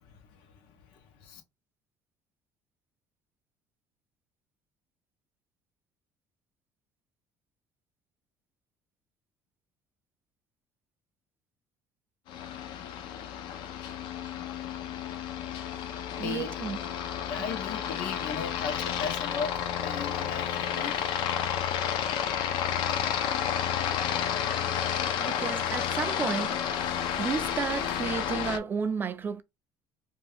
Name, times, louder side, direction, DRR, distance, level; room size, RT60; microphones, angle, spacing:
voice 1, 0.0-0.4 0.9-1.4 16.2-16.5 17.3-21.8 22.1-23.1, left 6 dB, 85° left, 0.9 m, -38 dB
Aircraft, 12.3-28.6, left 9 dB, 65° left, 0.5 m, -31 dB
voice 2, 16.2-16.8 17.4-17.5 24.1-24.2 25.2-29.4, right 6 dB, 25° right, 0.4 m, -33 dB
2.7 x 2.6 x 3.3 m
cardioid pair, 145°, 8 cm